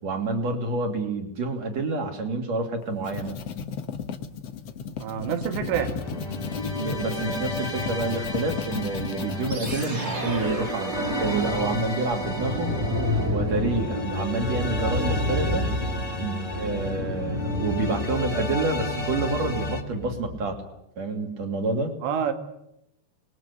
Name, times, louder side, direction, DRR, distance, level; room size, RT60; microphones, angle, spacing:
voice 1, 0.0-3.4 6.8-12.7 13.3-15.7 16.2-20.6 21.0-21.9, right 3 dB, 40° right, 5 dB, 3.6 m, -28 dB
sound 1, 2.8-9.9, left 7 dB, 75° left, 1.4 m, -34 dB
voice 2, 5.0-6.0 22.0-22.3, right 8 dB, 85° right, 8 dB, 4.0 m, -27 dB
sound 2, 5.7-19.8, left 1 dB, 15° left, 1.3 m, -33 dB
sound 3, 9.5-20.6, left 1 dB, 20° right, 2.8 m, -30 dB
26.5 x 21.0 x 8.4 m, 0.83 s
omnidirectional pair, 5.0 m